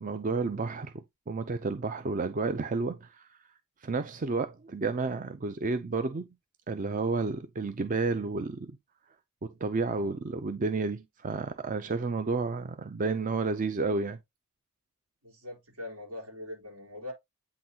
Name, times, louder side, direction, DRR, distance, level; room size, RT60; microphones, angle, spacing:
voice 1, 0.0-3.3 3.8-6.2 6.7-8.8 9.4-14.2, right 3 dB, 35° right, 0.5 m, -31 dB
voice 2, 15.2-17.1, left 1 dB, 90° right, 3.8 m, -42 dB
8.5 x 3.9 x 2.8 m
head